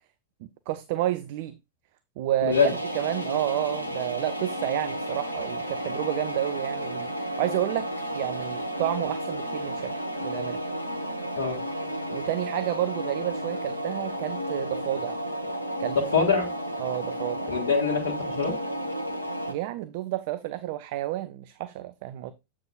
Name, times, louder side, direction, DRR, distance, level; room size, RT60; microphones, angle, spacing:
voice 1, 0.7-1.6 2.2-2.6 2.9-7.1 7.4-7.9 8.1-9.9 10.2-10.6 12.1-15.2 15.8-16.0 16.8-17.4 19.5-22.3, right 14 dB, 50° right, 0.5 m, -30 dB
voice 2, 2.4-2.7 11.4-11.6 15.9-16.5 17.5-18.5, left 5 dB, 65° left, 1.8 m, -24 dB
sound 1, 2.5-19.5, equal, 85° left, 1.0 m, -32 dB
7.9 x 7.2 x 2.3 m
figure-of-eight pair, 90°, 0 cm